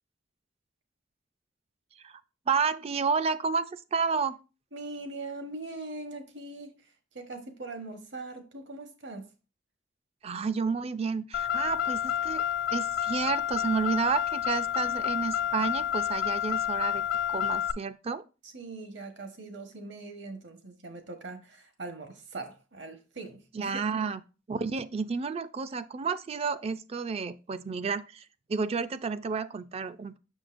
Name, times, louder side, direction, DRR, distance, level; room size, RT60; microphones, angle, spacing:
voice 1, 2.5-4.4 10.2-12.4 12.7-18.2 23.5-24.2 24.5-28.2 28.5-30.2, right 5 dB, 35° right, 0.4 m, -31 dB
voice 2, 4.7-6.8 7.1-9.3 18.4-23.8, right 2 dB, 70° right, 1.2 m, -41 dB
Car, 11.3-17.7, left 10 dB, 55° left, 0.3 m, -29 dB
6.4 x 6.2 x 2.5 m
head